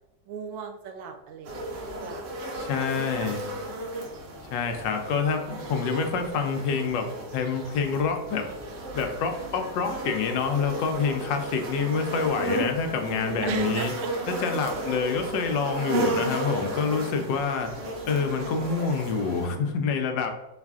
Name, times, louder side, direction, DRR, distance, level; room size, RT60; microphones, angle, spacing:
voice 1, 0.3-3.3 13.4-14.1, right 6 dB, 85° right, 5 dB, 1.3 m, -39 dB
sound 1, 1.4-19.5, right 1 dB, 55° right, 0.9 m, -33 dB
voice 2, 2.6-3.5 4.4-7.1 7.3-8.5 8.9-13.9 14.3-17.7 18.0-20.3, left 5 dB, 80° left, 5 dB, 1.2 m, -27 dB
4.0 x 2.4 x 3.5 m, 0.93 s
omnidirectional pair, 2.0 m